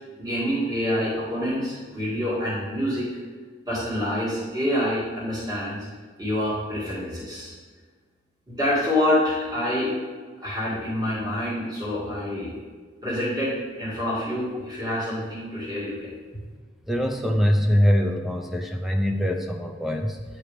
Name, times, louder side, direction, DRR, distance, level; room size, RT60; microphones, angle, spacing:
voice 1, 0.2-3.1 3.7-5.8 6.2-7.5 8.5-10.0 10.4-12.6 13.0-16.1, left 1 dB, 20° right, -8 dB, 2.0 m, -27 dB
voice 2, 16.9-20.2, equal, ahead, 3 dB, 0.5 m, -23 dB
9.1 x 4.6 x 3.4 m, 1.5 s
head